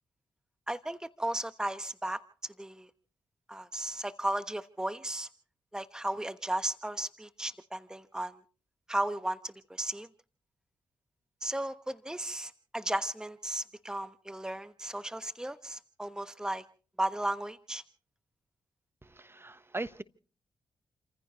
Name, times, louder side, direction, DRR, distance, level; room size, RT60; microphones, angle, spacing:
voice 1, 0.7-2.2 2.6-2.9 3.5-5.3 5.7-8.4 8.9-10.1 11.4-16.6 17.0-17.8, right 1 dB, 5° right, 1.1 m, -35 dB
voice 2, 19.0-20.0, right 2 dB, 20° right, 1.2 m, -39 dB
30.0 x 15.0 x 3.1 m
supercardioid pair, 45°, 11 cm